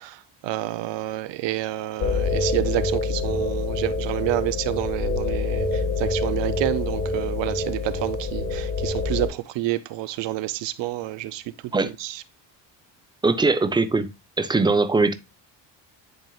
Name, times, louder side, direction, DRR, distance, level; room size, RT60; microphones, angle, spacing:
voice 1, 0.0-11.4 12.0-12.2, right 16 dB, 80° right, 0.7 m, -29 dB
sound 1, 2.0-9.3, left 3 dB, 45° left, 1.7 m, -26 dB
voice 2, 13.2-14.1 14.4-15.1, right 3 dB, 10° right, 0.5 m, -20 dB
11.0 x 4.5 x 2.3 m
cardioid pair, 145°, 43 cm